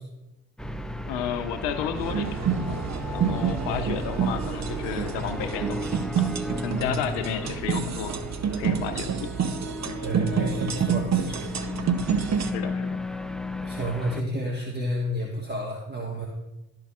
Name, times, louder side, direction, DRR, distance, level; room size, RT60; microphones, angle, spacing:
sound 1, 0.6-14.2, left 1 dB, ahead, 0.3 m, -35 dB
voice 1, 1.0-2.4 2.7-2.8 3.1-5.9 6.2-6.3 6.6-8.2 8.5-9.5 9.9-10.0 12.4-13.0, left 9 dB, 70° left, 8 dB, 0.8 m, -32 dB
sound 2, 2.0-12.5, right 7 dB, 40° right, 0.9 m, -28 dB
voice 2, 3.6-3.9 6.7-7.0 10.0-11.5 13.6-16.3, equal, 25° right, -1 dB, 1.4 m, -31 dB
12.5 x 4.6 x 2.4 m, 0.99 s
hypercardioid pair, 50°, 43 cm